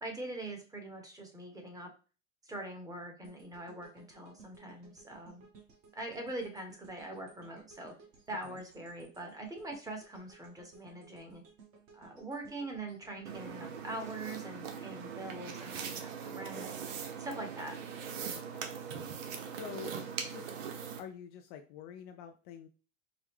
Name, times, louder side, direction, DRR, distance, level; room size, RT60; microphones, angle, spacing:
voice 1, 0.0-1.9 2.4-5.5 5.9-7.9 8.3-11.4 11.9-17.8, right 2 dB, 10° right, 3 dB, 1.0 m, -43 dB
sound 1, 3.2-15.4 15.8-16.0, right 5 dB, 35° right, 1.2 m, -59 dB
sound 2, 13.3-21.0, right 6 dB, 80° right, 0.9 m, -41 dB
voice 2, 19.5-20.0 20.2-20.6 21.0-22.7, left 9 dB, 40° left, 5 dB, 0.4 m, -47 dB
4.8 x 2.1 x 3.5 m, 0.35 s
hypercardioid pair, 120°, 38 cm